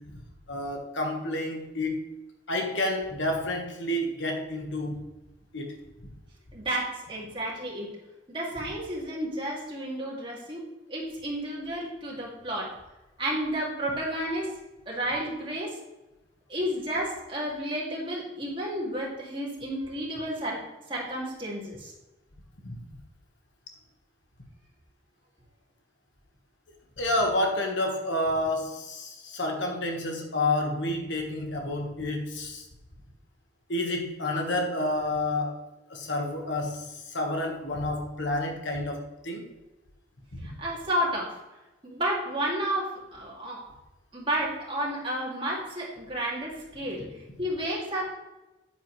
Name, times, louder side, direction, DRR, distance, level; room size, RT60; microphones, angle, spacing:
voice 1, 0.5-2.0 2.5-5.0 5.5-5.7 22.6-22.8 27.0-32.6 33.7-35.6 35.9-39.5 40.3-40.5, left 1 dB, 70° left, 2 dB, 1.6 m, -29 dB
voice 2, 6.5-7.9 8.3-10.6 10.9-12.7 13.2-14.5 14.9-15.8 16.5-20.6 20.9-21.9 40.4-41.4 41.8-43.7 44.1-48.1, right 1 dB, 25° right, -4 dB, 2.5 m, -31 dB
9.1 x 8.9 x 3.3 m, 1.0 s
head